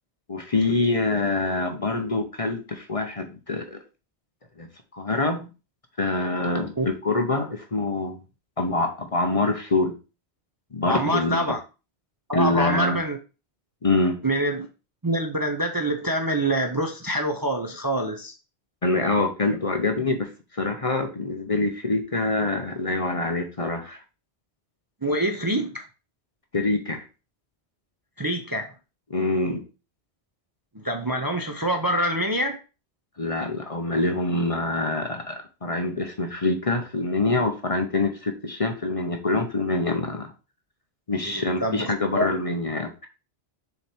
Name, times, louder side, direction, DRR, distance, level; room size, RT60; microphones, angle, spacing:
voice 1, 0.3-3.8 4.6-4.7 4.9-5.5 6.0-8.2 8.6-9.9 10.7-11.4 12.3-13.0 13.8-14.2 18.8-24.0 26.5-27.0 29.1-29.6 33.2-40.3 41.1-43.1, left 2 dB, 35° left, 5 dB, 0.8 m, -25 dB
voice 2, 10.8-11.6 12.3-13.2 14.2-14.7 15.0-18.3 25.0-25.8 28.2-28.7 30.7-32.6 41.2-42.3, right 1 dB, 25° right, 4 dB, 0.6 m, -25 dB
6.8 x 3.2 x 4.4 m, 0.31 s
omnidirectional pair, 1.1 m